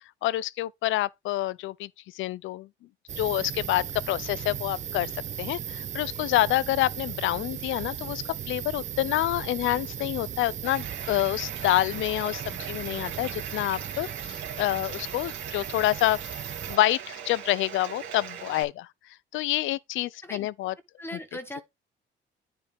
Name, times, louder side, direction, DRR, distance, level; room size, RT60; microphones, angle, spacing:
voice 1, 0.2-1.9 2.1-2.7 3.2-18.9 19.3-20.7, left 15 dB, 80° left, 0.4 m, -27 dB
sound 1, 3.1-16.8, right 9 dB, 40° right, 0.4 m, -37 dB
Bathtub (filling or washing), 10.6-18.6, right 8 dB, 70° right, 2.2 m, -40 dB
voice 2, 21.0-21.6, left 1 dB, 10° left, 1.4 m, -38 dB
9.7 x 5.2 x 3.4 m
cardioid pair, 90°, 20 cm